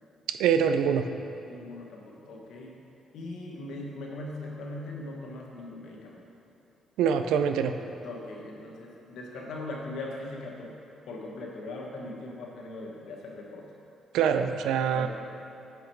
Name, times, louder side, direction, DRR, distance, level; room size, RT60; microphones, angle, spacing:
voice 1, 0.3-1.0 7.0-7.7 14.1-15.1, right 7 dB, 90° right, 8 dB, 0.3 m, -24 dB
voice 2, 1.5-2.8 3.1-6.3 8.0-10.8 11.1-13.7 14.9-15.1, left 2 dB, 75° left, -2 dB, 1.1 m, -40 dB
5.7 x 5.3 x 4.5 m, 2.9 s
cardioid pair, 90°, 0 cm